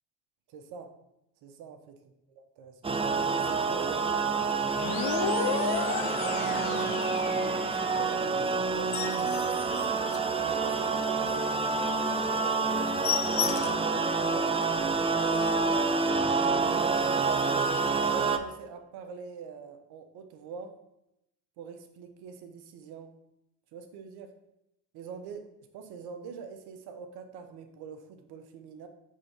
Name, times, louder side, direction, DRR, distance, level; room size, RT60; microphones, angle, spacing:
voice 1, 0.5-0.9 1.4-2.0 2.3-2.9 3.3-4.1 5.1-9.9 10.4-14.5 15.2-17.5 18.0-20.7 21.6-23.1 23.7-24.3 24.9-25.4 25.7-28.9, right 6 dB, 65° right, 6 dB, 1.0 m, -44 dB
sound 1, 2.8-18.4, right 4 dB, 15° right, 0.5 m, -28 dB
sound 2, 4.7-8.2, left 6 dB, 60° left, 1.0 m, -33 dB
sound 3, 8.8-10.9 11.3-11.5 11.8-11.9 12.2-12.4 12.6-14.0 14.4-14.5 14.9-15.0 15.2-15.7 16.5-16.6, left 10 dB, 35° left, 0.5 m, -35 dB
5.1 x 3.7 x 5.8 m, 0.85 s
hypercardioid pair, 55°, 42 cm